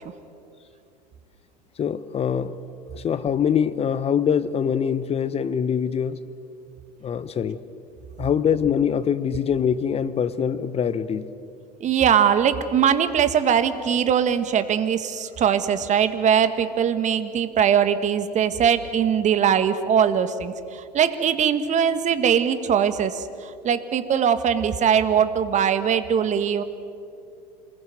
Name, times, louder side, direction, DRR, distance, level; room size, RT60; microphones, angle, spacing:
voice 1, 1.8-2.6 2.9-6.2 7.0-7.6 8.2-11.3, left 7 dB, 30° left, 15 dB, 1.0 m, -24 dB
voice 2, 11.8-26.6, right 8 dB, 35° right, 11 dB, 1.8 m, -21 dB
27.0 x 21.0 x 7.9 m, 2.5 s
hypercardioid pair, 85°, 21 cm